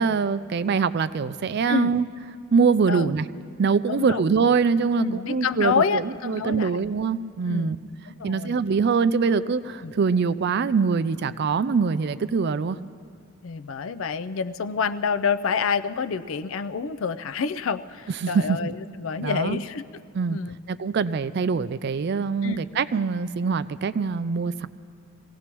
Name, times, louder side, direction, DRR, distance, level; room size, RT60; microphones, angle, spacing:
voice 1, 0.0-2.1 2.5-3.3 3.6-7.8 8.2-12.8 18.2-18.6 19.2-19.6 20.1-20.4 20.7-24.7, right 5 dB, 50° right, 14 dB, 0.4 m, -23 dB
voice 2, 3.9-4.2 5.0-6.7 7.5-7.8 8.2-8.6 9.8-9.9 13.4-19.8 20.3-20.5 22.4-22.6, left 6 dB, 65° left, 12 dB, 0.4 m, -27 dB
23.5 x 17.0 x 3.0 m, 2.2 s
head